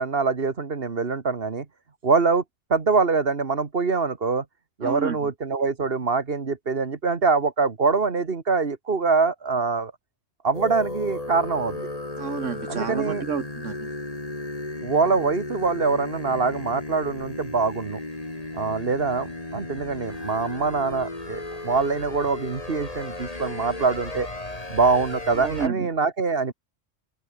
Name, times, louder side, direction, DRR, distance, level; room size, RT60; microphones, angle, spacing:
voice 1, 0.0-1.7 2.0-2.4 2.7-4.5 4.8-9.9 10.4-11.9 12.7-13.2 14.8-18.0 18.5-24.3 24.7-26.5, right 4 dB, 50° right, 1.9 m, -24 dB
voice 2, 4.8-5.2 12.2-13.8 25.4-25.9, right 6 dB, 75° right, 1.8 m, -29 dB
sound 1, 10.5-25.7, left 2 dB, 30° left, 3.0 m, -35 dB
open air
omnidirectional pair, 1.3 m